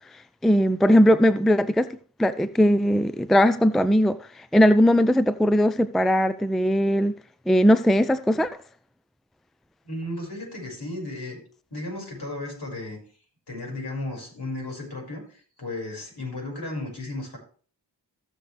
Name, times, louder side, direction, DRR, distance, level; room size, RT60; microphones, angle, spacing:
voice 1, 0.4-1.9 2.2-7.1 7.5-8.5, equal, ahead, 0.5 m, -19 dB
voice 2, 9.8-11.4 11.7-13.0 13.5-17.4, left 2 dB, 65° left, 5.7 m, -34 dB
15.5 x 6.6 x 3.4 m
cardioid pair, 50°, 43 cm